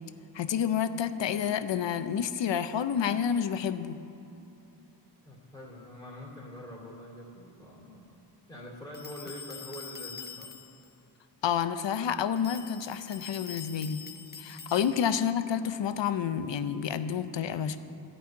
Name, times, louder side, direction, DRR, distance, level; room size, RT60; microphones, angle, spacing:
voice 1, 0.3-4.0 11.4-14.0 14.4-17.8, left 8 dB, 75° left, 11 dB, 0.6 m, -29 dB
voice 2, 5.2-8.2 8.5-10.5, equal, 5° left, -6 dB, 2.4 m, -45 dB
sound 1, 8.9-10.9 12.4-15.3, left 6 dB, 25° left, 0.4 m, -45 dB
13.0 x 5.5 x 8.4 m, 2.9 s
wide cardioid pair, 130°, 44 cm